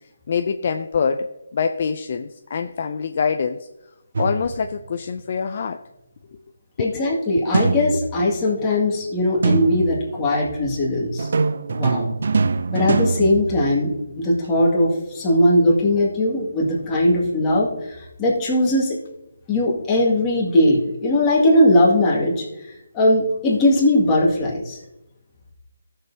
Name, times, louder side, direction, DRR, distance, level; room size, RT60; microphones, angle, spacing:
voice 1, 0.3-1.3 1.5-3.6 4.2-5.8 6.8-7.0 7.9-8.0, left 6 dB, 40° left, 7 dB, 0.4 m, -24 dB
sound 1, 4.2-4.8 7.5-8.4 9.4-10.2 11.2-14.1, right 4 dB, 55° right, 0.5 m, -23 dB
voice 2, 6.8-11.3 11.7-12.1 12.7-19.0 19.5-24.8, left 1 dB, 15° left, -5 dB, 2.1 m, -19 dB
15.0 x 6.7 x 2.8 m, 0.94 s
hypercardioid pair, 165°, 0 cm